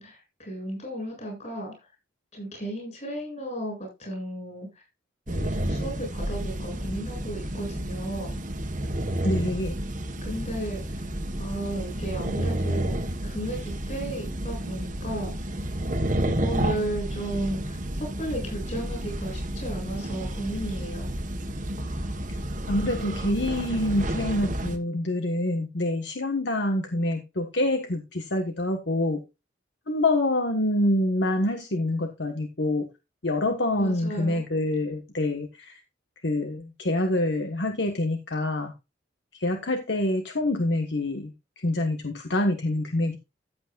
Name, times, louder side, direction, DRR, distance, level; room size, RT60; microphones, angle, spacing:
voice 1, 0.0-1.7 2.3-4.7 5.3-8.4 10.2-11.0 11.4-13.0 13.2-15.3 16.2-21.1 33.8-34.4, right 1 dB, 40° left, 2 dB, 7.8 m, -34 dB
sound 1, 5.3-24.8, right 1 dB, 45° right, 1.4 m, -31 dB
voice 2, 9.2-9.8 22.7-29.2 29.9-32.9 33.2-35.8 36.2-38.7 39.4-41.3 41.6-43.2, left 1 dB, 65° left, 5 dB, 1.4 m, -26 dB
14.5 x 8.3 x 2.5 m, 0.24 s
head